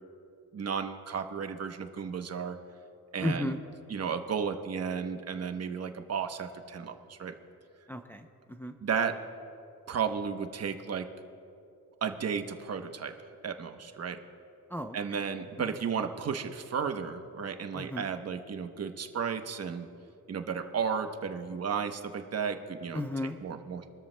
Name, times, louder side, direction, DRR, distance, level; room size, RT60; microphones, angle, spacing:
voice 1, 0.5-2.6 3.1-3.6 3.9-7.3 8.8-9.2 9.9-11.0 12.0-13.1 13.4-14.2 14.9-19.9 20.3-23.0 23.4-23.9, right 6 dB, 50° right, 7 dB, 0.9 m, -33 dB
voice 2, 3.2-3.6 7.9-8.7 14.7-15.0 15.6-15.7 17.7-18.1 22.9-23.4, left 1 dB, 5° left, 4 dB, 0.5 m, -34 dB
26.5 x 13.0 x 2.2 m, 2.6 s
cardioid pair, 115°, 33 cm